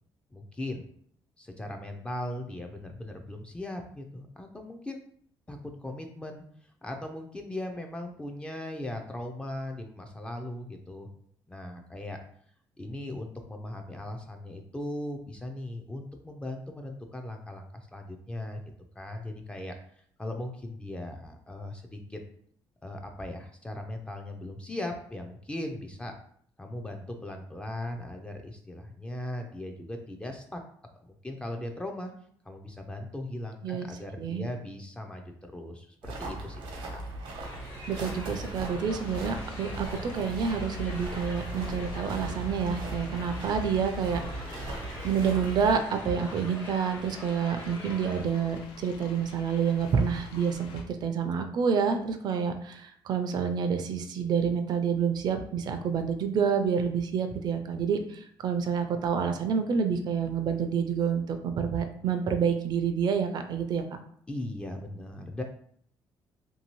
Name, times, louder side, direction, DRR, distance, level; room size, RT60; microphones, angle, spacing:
voice 1, 0.3-0.8 1.4-5.0 5.5-6.4 6.8-11.1 11.5-12.2 12.8-17.7 17.9-18.6 19.0-19.7 20.2-22.2 22.8-26.1 26.6-30.6 31.0-32.1 32.5-37.0 64.3-65.4, left 1 dB, 10° left, 3 dB, 0.4 m, -38 dB
sound 1, 36.0-45.8, right 2 dB, 85° right, 0.8 m, -38 dB
sound 2, 37.4-48.2, left 1 dB, 55° left, 1.2 m, -45 dB
voice 2, 37.9-44.5 45.0-63.8, right 6 dB, 55° right, 6 dB, 0.4 m, -28 dB
sound 3, 38.9-50.8, left 2 dB, 85° left, 0.5 m, -47 dB
2.7 x 2.6 x 3.0 m, 0.62 s
cardioid pair, 120°, 9 cm